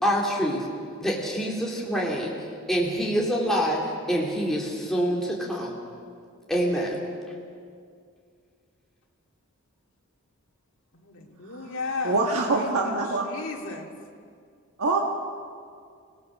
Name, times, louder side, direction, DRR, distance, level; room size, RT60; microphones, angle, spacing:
voice 1, 0.0-0.7 1.0-2.3 2.7-3.8 4.1-5.7 6.5-7.0, equal, ahead, -4 dB, 2.9 m, -26 dB
voice 2, 10.9-12.2 12.5-13.0 13.2-13.9, left 4 dB, 65° left, 0 dB, 2.3 m, -34 dB
voice 3, 12.0-13.3 14.8-15.0, right 3 dB, 75° right, 0 dB, 1.5 m, -24 dB
24.5 x 17.5 x 6.4 m, 2.2 s
head